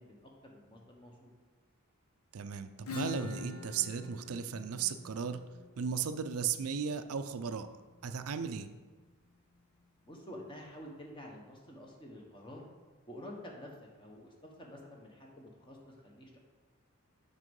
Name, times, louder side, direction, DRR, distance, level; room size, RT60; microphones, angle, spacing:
voice 1, 0.0-1.3 10.0-12.7 13.1-16.4, left 1 dB, 20° left, 0 dB, 1.2 m, -49 dB
voice 2, 2.3-5.4 5.8-7.7 8.0-8.7, right 7 dB, 75° right, 9 dB, 0.5 m, -36 dB
Acoustic guitar / Strum, 2.9-8.2, left 4 dB, 85° left, 0.9 m, -45 dB
6.3 x 5.4 x 5.4 m, 1.3 s
head